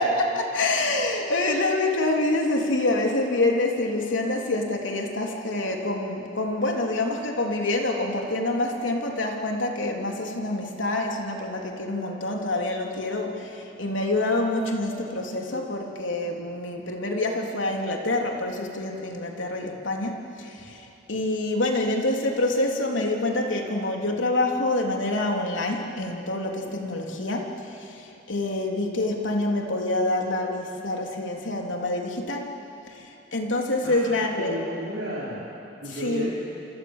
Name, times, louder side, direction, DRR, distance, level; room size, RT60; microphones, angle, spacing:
voice 1, 0.0-32.5 32.9-34.6 35.9-36.3, left 2 dB, 90° left, 1 dB, 3.4 m, -26 dB
voice 2, 33.8-35.4 35.8-36.3, equal, 85° right, -9 dB, 5.5 m, -33 dB
28.0 x 26.5 x 7.4 m, 2.8 s
head